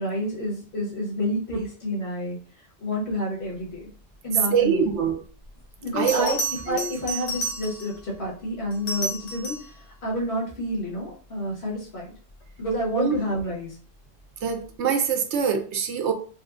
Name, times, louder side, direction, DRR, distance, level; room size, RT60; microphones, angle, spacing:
voice 1, 0.0-2.4 2.8-3.9 4.2-4.9 5.8-6.4 6.7-9.6 10.0-12.1 12.6-13.7, equal, 65° left, -4 dB, 1.5 m, -29 dB
voice 2, 4.5-5.2 6.0-6.4 6.7-7.0 13.0-13.2 14.4-16.1, right 7 dB, 80° right, 6 dB, 0.9 m, -24 dB
Bell, 5.4-5.5 6.1-8.0 8.7-9.8 12.5-12.7, right 2 dB, 40° left, 0.8 m, -31 dB
4.2 x 2.2 x 2.4 m, 0.41 s
omnidirectional pair, 1.1 m